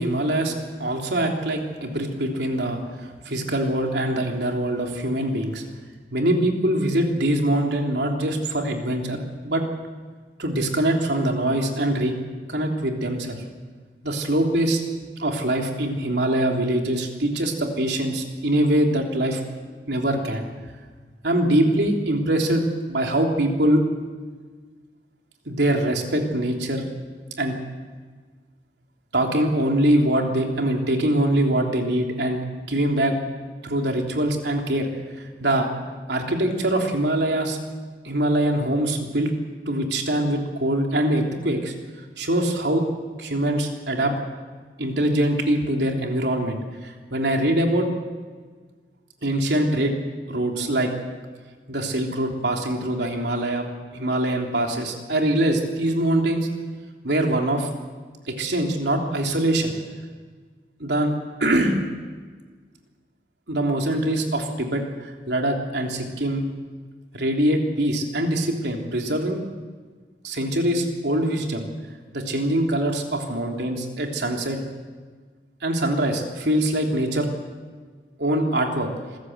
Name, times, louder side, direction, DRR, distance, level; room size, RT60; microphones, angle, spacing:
voice 1, 0.0-5.6 6.1-9.6 10.4-12.1 12.5-13.4 14.0-14.8 15.2-19.4 19.9-20.4 21.2-23.8 25.4-26.8 27.4-27.6 29.1-33.1 33.6-34.9 35.2-35.7 36.1-37.6 38.0-39.3 39.7-41.7 42.2-42.8 43.2-44.1 44.8-47.9 49.2-49.9 50.3-50.9 51.7-53.6 53.9-56.5 57.0-57.7 58.3-59.7 60.8-61.1 61.4-61.7 63.5-66.4 67.1-69.4 70.2-71.6 72.1-74.6 75.6-77.3 78.2-78.9, right 1 dB, 75° right, 2 dB, 3.4 m, -23 dB
26.5 x 15.0 x 8.0 m, 1.5 s
head